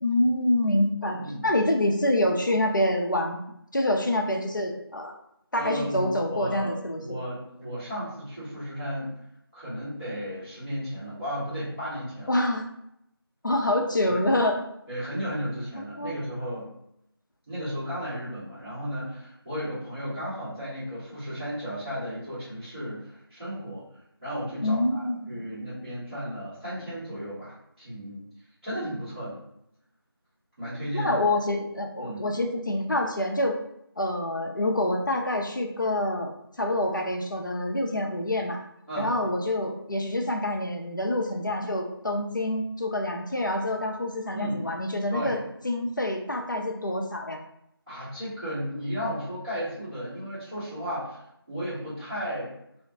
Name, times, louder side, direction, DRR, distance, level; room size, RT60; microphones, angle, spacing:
voice 1, 0.0-3.4 3.7-5.2 5.5-7.0 12.3-12.7 13.4-14.5 16.0-16.1 24.6-25.3 30.9-33.6 34.0-36.3 36.6-38.6 39.0-45.4 45.6-47.4, left 1 dB, 50° left, 2 dB, 0.4 m, -26 dB
voice 2, 1.1-1.4 5.5-9.1 9.5-12.4 14.1-14.3 14.9-16.7 17.5-23.8 24.2-28.2 28.6-29.4 30.6-31.2 32.0-32.4 38.9-39.1 44.3-44.6 45.1-45.4 47.9-51.2 51.5-52.5, equal, 20° right, -18 dB, 1.3 m, -34 dB
2.5 x 2.1 x 2.7 m, 0.77 s
figure-of-eight pair, 170°, 13 cm